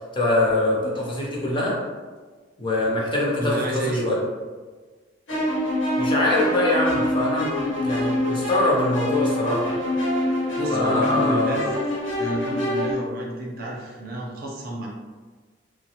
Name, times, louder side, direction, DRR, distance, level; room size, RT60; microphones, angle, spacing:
voice 1, 0.1-1.8 2.6-3.6 4.0-4.2 6.0-9.8 10.7-11.6, left 1 dB, 25° left, -4 dB, 0.6 m, -23 dB
voice 2, 3.4-4.1 10.6-11.6 12.2-14.9, right 1 dB, 55° right, -2 dB, 0.6 m, -29 dB
sound 1, 5.3-12.9, left 1 dB, 90° left, 0.9 m, -25 dB
3.1 x 2.0 x 2.8 m, 1.4 s
head